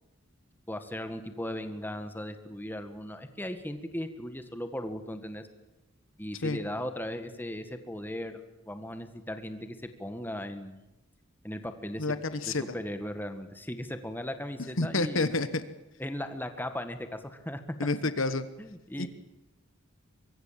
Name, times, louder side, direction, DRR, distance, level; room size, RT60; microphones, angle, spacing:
voice 1, 0.7-5.4 6.2-10.9 11.4-12.1 12.5-15.3 16.0-17.6 18.0-18.1 18.6-19.1, left 1 dB, 10° left, 8 dB, 1.8 m, -37 dB
voice 2, 12.0-12.6 14.8-15.6 17.8-18.5 19.0-19.1, left 3 dB, 70° left, 12 dB, 1.3 m, -29 dB
24.5 x 23.0 x 7.6 m, 1.0 s
head